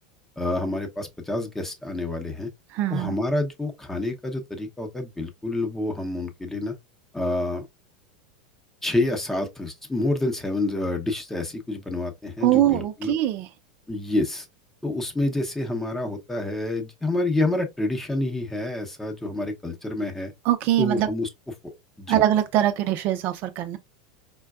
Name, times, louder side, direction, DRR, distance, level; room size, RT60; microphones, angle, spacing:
voice 1, 0.4-2.5 2.9-6.7 7.1-7.6 8.8-13.1 13.9-14.5 14.8-20.3 20.8-21.3 21.6-22.2, left 2 dB, 10° left, 0.8 m, -28 dB
voice 2, 2.7-3.1 12.4-13.5 20.5-21.1 22.1-23.8, right 13 dB, 50° right, 0.5 m, -22 dB
4.4 x 2.2 x 2.3 m
hypercardioid pair, 110°, 4 cm